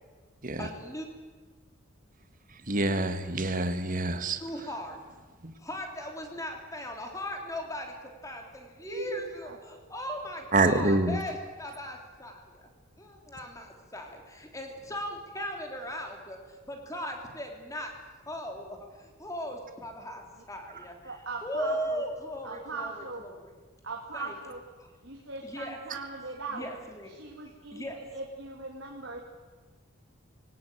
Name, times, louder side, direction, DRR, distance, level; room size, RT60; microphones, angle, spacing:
voice 1, 0.6-1.1 4.4-5.0 5.6-12.7 13.0-17.9 18.3-23.5 24.1-24.4 24.8-24.9 25.4-25.8 26.5-27.2 27.7-28.0, equal, 15° left, 3 dB, 3.3 m, -38 dB
voice 2, 2.6-4.4 5.4-5.5 10.5-11.2, right 2 dB, 40° right, 9 dB, 1.7 m, -26 dB
voice 3, 8.8-9.1 9.4-9.6 21.0-22.0 22.4-23.2 23.8-24.6 25.0-26.7 27.1-27.8 28.1-29.2, right 3 dB, 60° right, 0 dB, 2.8 m, -39 dB
22.0 x 18.0 x 9.2 m, 1.4 s
head